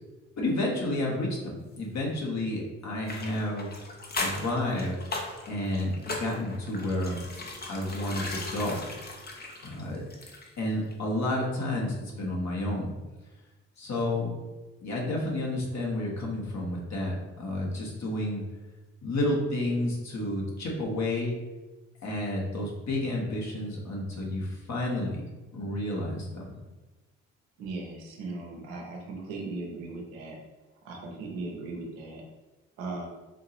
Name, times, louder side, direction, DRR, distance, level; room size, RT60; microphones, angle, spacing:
voice 1, 0.4-3.7 4.2-5.0 5.5-7.2 7.7-8.8 9.6-10.0 10.6-12.9 13.8-14.3 14.8-18.4 19.0-21.3 22.0-25.2 25.5-26.6, left 1 dB, 45° left, -2 dB, 1.4 m, -30 dB
sound 1, 3.0-10.6 10.9-11.0, left 2 dB, 25° left, 0.9 m, -38 dB
voice 2, 27.6-30.4 30.8-32.2 32.8-33.1, right 3 dB, 75° right, 0 dB, 0.9 m, -38 dB
4.4 x 2.8 x 2.9 m, 1.1 s
figure-of-eight pair, 45°, 39 cm